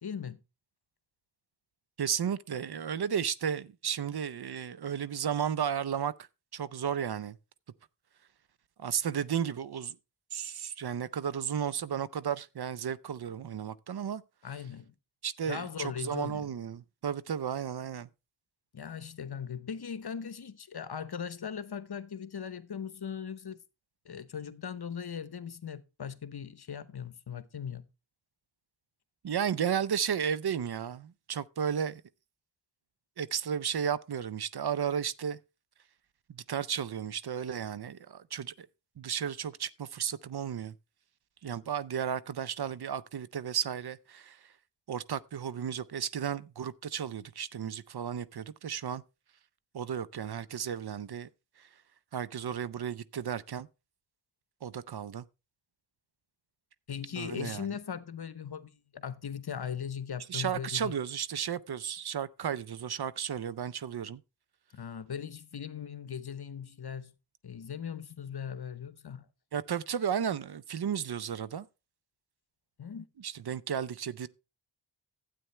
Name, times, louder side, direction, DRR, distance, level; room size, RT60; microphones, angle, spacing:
voice 1, 0.0-0.4 14.4-14.9 15.5-16.5 18.7-23.6 24.0-27.8 56.9-60.9 64.7-67.1 67.4-69.3 72.8-73.0, left 7 dB, 60° left, 0.9 m, -39 dB
voice 2, 2.0-6.1 6.5-7.4 8.8-10.0 10.3-14.2 15.2-18.1 29.2-32.0 33.2-35.4 36.3-38.7 39.0-40.7 41.4-44.4 44.9-49.0 49.7-51.3 52.1-53.7 54.6-55.2 57.2-57.7 60.3-64.2 69.5-71.7 73.2-74.3, right 8 dB, 60° right, 0.6 m, -33 dB
12.5 x 8.6 x 3.3 m
wide cardioid pair, 65°, 44 cm